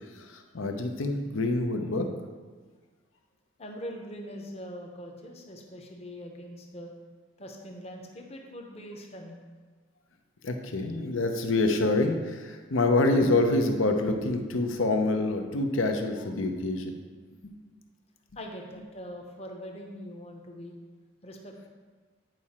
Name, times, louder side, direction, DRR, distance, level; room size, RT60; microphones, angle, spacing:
voice 1, 0.3-2.1 10.4-16.9 17.4-17.5, left 2 dB, 80° left, 5 dB, 0.8 m, -26 dB
voice 2, 3.6-6.9 7.4-9.4 18.4-20.7 21.2-21.7, equal, 30° left, 2 dB, 0.8 m, -42 dB
9.2 x 4.9 x 4.3 m, 1.4 s
head